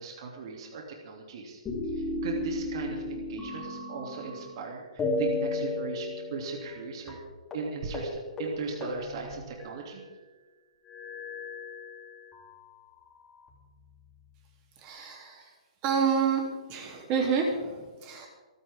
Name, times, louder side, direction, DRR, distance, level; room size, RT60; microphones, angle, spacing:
voice 1, 0.0-1.6 2.0-7.2 7.5-10.0, right 4 dB, 45° right, 0 dB, 3.0 m, -38 dB
sound 1, 1.7-4.6 5.0-6.8 7.1-7.2 7.5-7.7 7.9-8.1 8.4-10.1 10.9-12.4 13.2-14.1, left 2 dB, 10° left, 3.3 m, -35 dB
voice 2, 14.8-15.5 15.8-16.4 16.7-18.3, right 6 dB, 25° right, 1 dB, 3.2 m, -28 dB
28.0 x 9.6 x 3.7 m, 1.3 s
hypercardioid pair, 160°, 4 cm